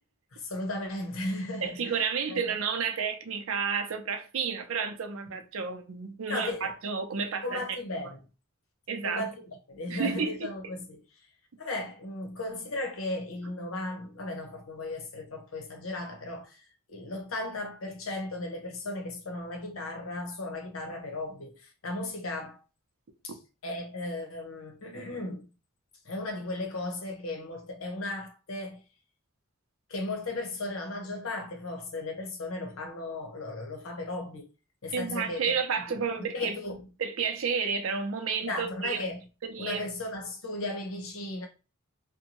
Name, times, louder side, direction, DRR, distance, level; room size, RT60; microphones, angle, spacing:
voice 1, 0.3-2.0 2.3-2.4 5.3-5.4 6.3-6.7 7.4-8.2 9.0-11.3 11.6-22.6 23.2-23.4 23.6-25.5 26.0-28.8 29.9-34.5 34.8-35.6 35.9-36.8 38.4-39.2 39.6-41.5, left 2 dB, 80° left, 0.8 m, -36 dB
voice 2, 1.6-7.6 8.9-9.3 9.9-10.3 34.9-36.6 37.0-39.0 39.4-39.8, right 6 dB, 75° right, 0.6 m, -31 dB
2.7 x 2.2 x 2.9 m
head